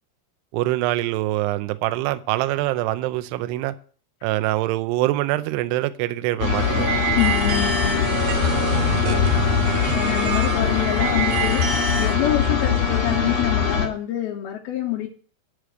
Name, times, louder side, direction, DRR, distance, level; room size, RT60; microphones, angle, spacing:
voice 1, 0.5-3.7 4.2-6.9, right 16 dB, 80° right, 2.5 m, -24 dB
sound 1, 6.4-13.9, left 6 dB, 50° left, 2.4 m, -22 dB
sound 2, 6.5-12.1, right 4 dB, 50° right, 3.0 m, -26 dB
voice 2, 7.2-8.2 9.1-11.7 12.0-15.1, left 12 dB, 85° left, 2.1 m, -27 dB
9.8 x 5.1 x 7.8 m
omnidirectional pair, 5.4 m